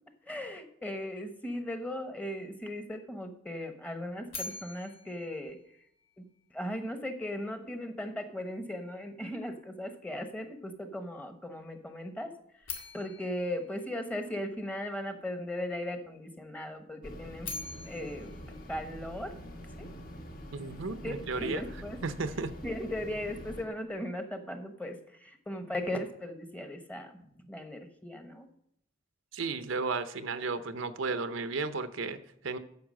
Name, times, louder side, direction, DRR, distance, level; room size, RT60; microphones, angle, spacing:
voice 1, 0.2-5.6 6.2-12.4 12.9-17.5 17.8-18.3 18.7-19.4 19.8-19.9 21.0-22.0 22.6-28.5, left 1 dB, 10° left, 7 dB, 1.0 m, -38 dB
sound 1, 4.3-6.4 12.6-14.8 17.2-19.6, left 4 dB, 80° left, 2.1 m, -45 dB
sound 2, 17.0-23.6, equal, 45° left, 1.6 m, -45 dB
voice 2, 20.5-21.6 22.0-22.5 29.3-32.6, right 4 dB, 70° right, 11 dB, 0.7 m, -34 dB
9.6 x 6.7 x 6.4 m, 0.73 s
head